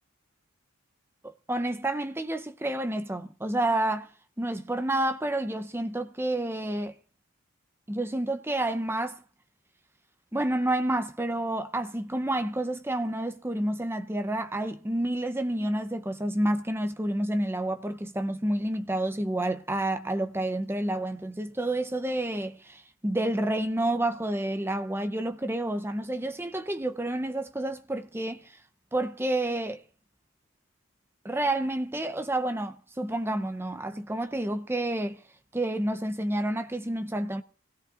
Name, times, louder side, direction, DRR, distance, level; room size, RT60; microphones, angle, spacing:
voice 1, 1.5-4.1 4.4-6.9 7.9-9.2 10.3-28.6 28.9-29.8 31.2-35.2 35.5-37.4, right 1 dB, 10° right, 0.6 m, -29 dB
25.5 x 17.0 x 2.5 m
head